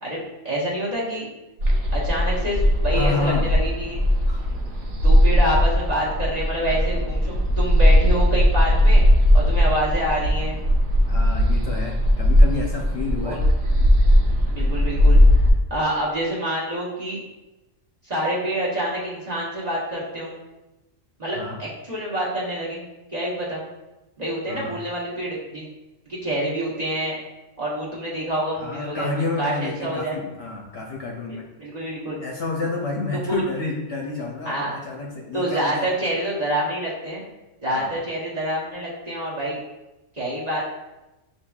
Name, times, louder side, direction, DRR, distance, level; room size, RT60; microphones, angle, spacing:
voice 1, 0.0-1.3 1.9-4.0 5.0-9.0 9.3-10.5 13.2-13.4 14.5-15.4 15.7-17.2 18.0-20.3 21.2-22.8 23.1-23.6 24.2-25.7 26.1-27.1 27.6-30.2 31.6-32.2 33.3-33.4 34.4-34.7 35.3-37.2 37.6-39.6 40.2-40.6, right 1 dB, 35° right, -6 dB, 0.9 m, -27 dB
sound 1, 1.6-15.5, equal, 80° right, 1.1 m, -18 dB
voice 2, 2.9-3.5 4.3-4.5 11.1-13.4 21.3-21.6 24.5-24.7 28.5-31.4 32.2-35.9 37.7-38.0, left 3 dB, 60° left, -1 dB, 0.7 m, -29 dB
6.9 x 2.8 x 2.3 m, 1.0 s
omnidirectional pair, 1.4 m